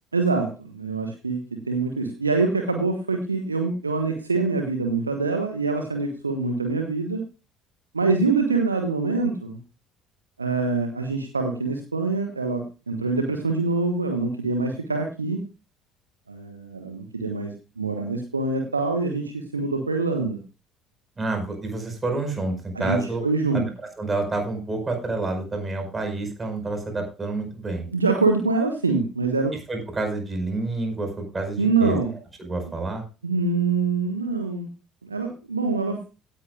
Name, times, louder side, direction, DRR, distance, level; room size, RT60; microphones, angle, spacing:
voice 1, 0.1-7.2 7.9-9.6 10.4-15.4 16.3-20.4 22.7-23.7 27.9-29.5 31.6-32.1 33.2-34.7 35.0-36.0, right 3 dB, 85° right, 5 dB, 1.1 m, -25 dB
voice 2, 21.2-23.2 23.5-27.9 29.7-32.0 32.4-33.0, right 2 dB, 25° right, 5 dB, 4.8 m, -28 dB
16.5 x 10.0 x 2.3 m, 0.31 s
figure-of-eight pair, 55°, 0 cm